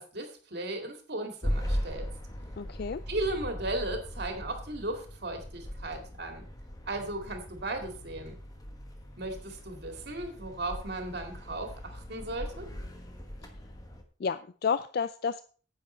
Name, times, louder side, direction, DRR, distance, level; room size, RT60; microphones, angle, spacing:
voice 1, 0.0-2.1 3.1-6.4 6.9-8.3 9.2-12.7, right 2 dB, 55° right, 4 dB, 2.3 m, -36 dB
sound 1, 1.4-14.0, equal, 20° left, 1.3 m, -39 dB
voice 2, 2.6-3.0 13.4-13.5 14.2-15.4, left 6 dB, 55° left, 13 dB, 0.4 m, -31 dB
9.7 x 8.2 x 4.4 m, 0.40 s
head